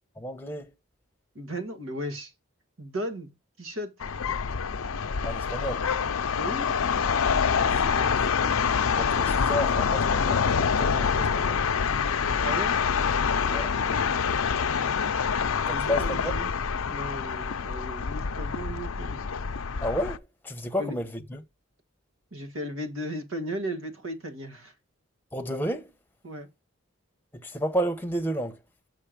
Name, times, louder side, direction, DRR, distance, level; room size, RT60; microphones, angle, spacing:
voice 1, 0.2-0.7 5.2-5.9 7.5-8.1 9.0-11.6 13.5-13.7 15.7-16.3 19.8-21.4 25.3-25.9 27.3-28.6, equal, 10° left, 0.9 m, -32 dB
voice 2, 1.4-2.3 2.8-3.9 6.3-6.8 12.4-12.8 15.7-16.5 16.9-19.2 20.8-21.0 22.3-24.7 26.2-26.5, equal, 75° right, 1.7 m, -35 dB
sound 1, 4.0-20.2, left 6 dB, 85° left, 0.6 m, -26 dB
6.5 x 5.9 x 5.0 m
head